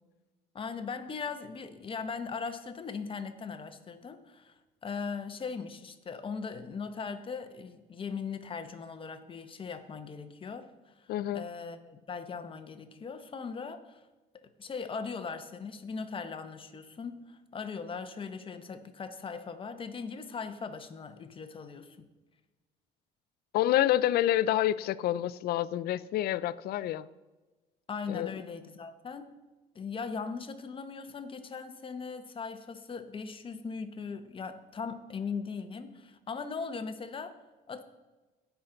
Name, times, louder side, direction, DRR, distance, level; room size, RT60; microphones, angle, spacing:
voice 1, 0.5-4.5 4.8-14.0 14.6-22.1 27.9-29.3 29.7-37.4 37.7-37.8, left 5 dB, 30° left, 1.0 m, -39 dB
voice 2, 11.1-11.4 23.5-27.1 28.1-28.3, left 13 dB, 65° left, 0.4 m, -28 dB
17.0 x 5.9 x 3.9 m
cardioid pair, 110°, 17 cm